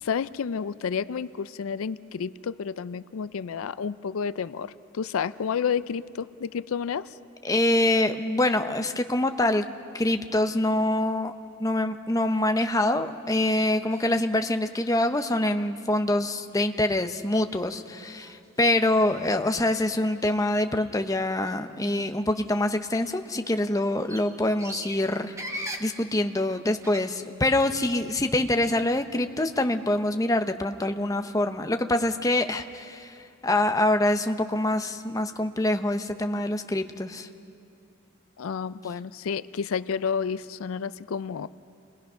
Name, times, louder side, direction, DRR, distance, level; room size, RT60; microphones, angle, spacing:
voice 1, 0.0-7.1 38.4-41.5, left 6 dB, 80° left, 16 dB, 0.4 m, -30 dB
voice 2, 7.4-9.7 9.9-11.3 11.6-37.3, left 1 dB, 15° left, 7 dB, 0.6 m, -25 dB
sound 1, 13.9-14.4 14.7-15.3 15.9-16.0 16.4-16.6 17.0-17.2 17.7-17.8 18.0-19.3 20.1-21.6 21.9-22.1 22.4-28.4 28.7-29.6, equal, 15° right, 1.2 m, -43 dB
28.5 x 20.5 x 5.6 m, 2.6 s
head